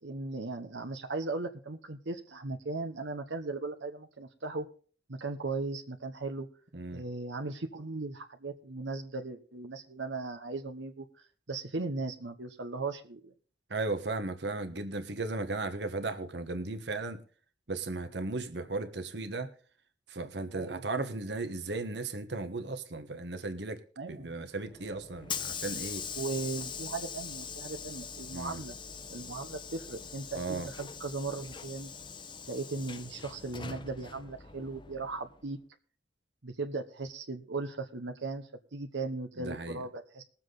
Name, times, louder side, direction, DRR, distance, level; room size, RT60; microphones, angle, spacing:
voice 1, 0.0-4.7 5.1-6.5 6.9-11.1 11.5-13.3 20.5-20.8 24.0-24.3 26.2-28.8 29.1-31.9 32.5-35.6 36.4-40.2, right 3 dB, 85° right, 5 dB, 1.1 m, -37 dB
voice 2, 6.7-7.0 13.7-17.2 17.7-19.5 20.1-23.8 24.1-26.1 28.3-28.6 30.3-30.7 39.4-39.8, right 3 dB, 70° right, 8 dB, 1.3 m, -36 dB
Hiss / Sliding door, 24.6-35.4, left 6 dB, 25° left, 0.7 m, -42 dB
21.0 x 7.4 x 3.9 m, 0.41 s
head